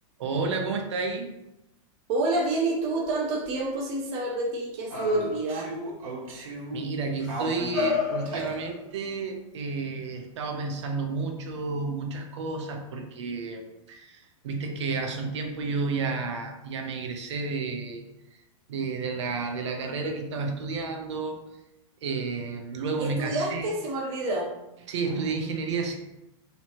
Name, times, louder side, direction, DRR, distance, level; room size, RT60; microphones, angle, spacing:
voice 1, 0.2-1.3 6.7-13.6 13.9-18.0 18.7-21.4 22.0-23.7 24.9-26.0, right 4 dB, 55° right, 3 dB, 0.7 m, -31 dB
voice 2, 2.1-5.7 23.0-24.5, right 2 dB, 20° right, -3 dB, 0.4 m, -28 dB
sound 1, 3.0-3.1 3.4-3.5 4.9-6.9 7.3-8.6, right 2 dB, 85° right, 1.3 m, -37 dB
sound 2, 4.9-5.7 7.2-9.1 10.5-10.6, left 5 dB, 55° left, 1.2 m, -32 dB
4.4 x 3.0 x 2.9 m, 0.90 s
supercardioid pair, 180°, 18 cm